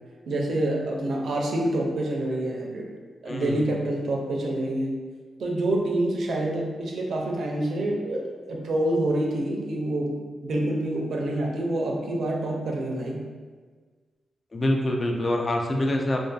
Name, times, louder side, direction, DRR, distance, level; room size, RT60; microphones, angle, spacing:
voice 1, 0.3-2.9 3.2-4.9 5.4-10.2 10.4-13.2, right 1 dB, 75° right, -1 dB, 0.4 m, -27 dB
voice 2, 3.3-3.7 14.5-16.2, left 1 dB, 40° left, 2 dB, 0.3 m, -25 dB
2.5 x 2.4 x 2.3 m, 1.5 s
cardioid pair, 70°, 0 cm